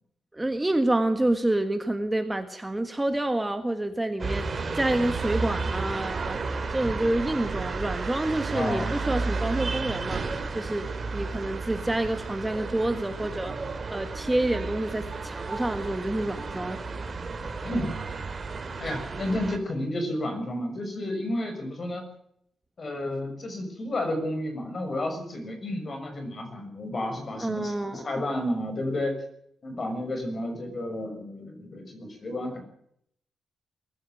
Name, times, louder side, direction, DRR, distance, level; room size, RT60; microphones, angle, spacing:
voice 1, 0.3-6.4 6.7-10.2 10.5-10.9 11.1-13.5 13.9-16.8 27.4-28.2, right 1 dB, 10° right, 7 dB, 1.6 m, -28 dB
sound 1, 4.2-19.6, right 4 dB, 35° right, 3.0 m, -32 dB
voice 2, 8.5-8.9 17.6-18.0 18.8-22.0 22.8-29.2 29.6-32.6, left 1 dB, 35° left, 6 dB, 6.2 m, -31 dB
21.5 x 15.5 x 9.1 m, 0.72 s
wide cardioid pair, 135°, 0 cm